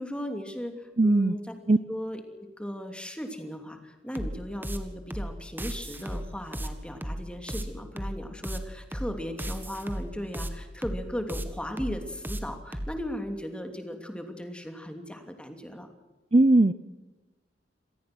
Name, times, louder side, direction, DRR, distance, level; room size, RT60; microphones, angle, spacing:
voice 1, 0.0-1.4 1.9-15.9, equal, 5° left, 5 dB, 2.9 m, -37 dB
voice 2, 1.0-1.3 1.7-1.8 16.3-16.7, right 2 dB, 35° right, 14 dB, 0.6 m, -19 dB
sound 1, 4.1-13.0, equal, 10° right, 1.9 m, -35 dB
26.5 x 18.5 x 6.2 m, 1.2 s
head